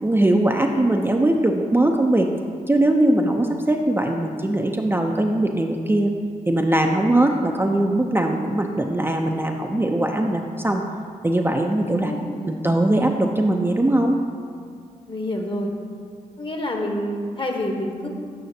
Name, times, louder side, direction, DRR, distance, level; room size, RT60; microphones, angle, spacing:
voice 1, 0.0-2.3 2.7-6.1 6.5-10.8 11.2-12.1 12.5-14.2, right 1 dB, 15° right, 2 dB, 0.5 m, -20 dB
voice 2, 11.9-12.6 15.1-15.7 16.4-18.1, left 1 dB, 35° left, 2 dB, 1.1 m, -28 dB
7.9 x 5.6 x 2.7 m, 2.1 s
supercardioid pair, 40°, 16 cm